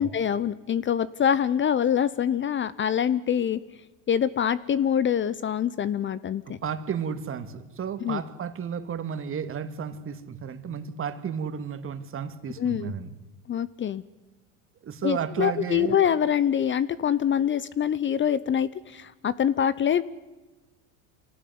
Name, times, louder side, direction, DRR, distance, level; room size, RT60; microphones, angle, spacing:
voice 1, 0.0-3.6 4.1-6.6 8.0-8.2 12.6-12.9 13.5-14.0 15.0-20.0, left 9 dB, 30° left, 18 dB, 0.8 m, -25 dB
voice 2, 6.5-13.1 14.8-16.0, right 7 dB, 35° right, 10 dB, 2.3 m, -33 dB
25.5 x 18.0 x 9.6 m, 1.2 s
supercardioid pair, 100°, 36 cm